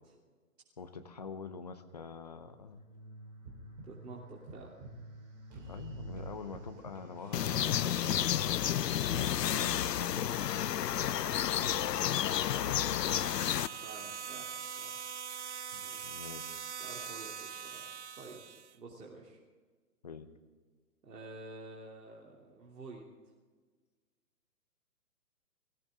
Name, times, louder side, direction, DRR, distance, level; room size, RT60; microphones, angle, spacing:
voice 1, 0.8-2.8 5.7-8.4 9.1-10.7 11.6-11.9 12.3-13.2 15.7-16.6 20.0-20.3, left 5 dB, 25° left, 9 dB, 0.7 m, -46 dB
sound 1, 2.4-8.1, right 1 dB, 25° right, 3.2 m, -48 dB
voice 2, 3.8-4.8 9.0-9.3 10.9-11.7 13.8-14.5 14.8-14.9 15.8-18.4 18.7-19.4 21.0-23.3, right 3 dB, 90° right, -3 dB, 3.3 m, -50 dB
sound 2, 7.3-13.7, left 10 dB, 85° left, 0.7 m, -31 dB
sound 3, 12.6-18.8, right 7 dB, 45° right, 0.7 m, -43 dB
22.0 x 16.5 x 3.7 m, 1.5 s
hypercardioid pair, 170°, 47 cm